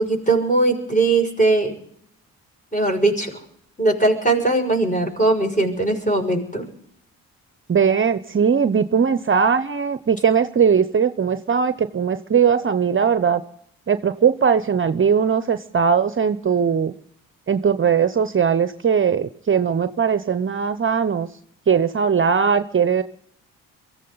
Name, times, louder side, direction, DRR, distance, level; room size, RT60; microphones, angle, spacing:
voice 1, 0.0-1.8 2.7-3.4 3.8-6.7, right 2 dB, 20° left, 2 dB, 6.2 m, -20 dB
voice 2, 7.7-13.4 13.9-16.9 17.5-21.3 21.7-23.0, right 7 dB, 35° right, 12 dB, 0.8 m, -19 dB
23.5 x 15.0 x 4.0 m, 0.68 s
supercardioid pair, 50°, 37 cm